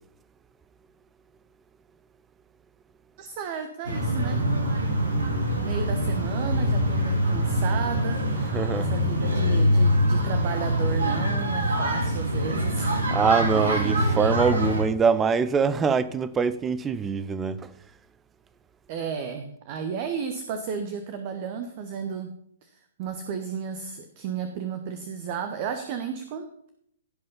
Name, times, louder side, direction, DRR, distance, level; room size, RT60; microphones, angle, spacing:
voice 1, 3.2-4.4 5.6-13.1 13.5-14.0 18.9-22.3 22.6-22.7 23.0-26.7, right 6 dB, 40° right, 1.2 m, -33 dB
sound 1, 3.8-14.8, equal, 65° right, 3.0 m, -24 dB
voice 2, 8.5-8.9 13.1-17.7, right 6 dB, 15° right, 0.7 m, -24 dB
16.5 x 5.6 x 5.5 m
figure-of-eight pair, 115°, 0 cm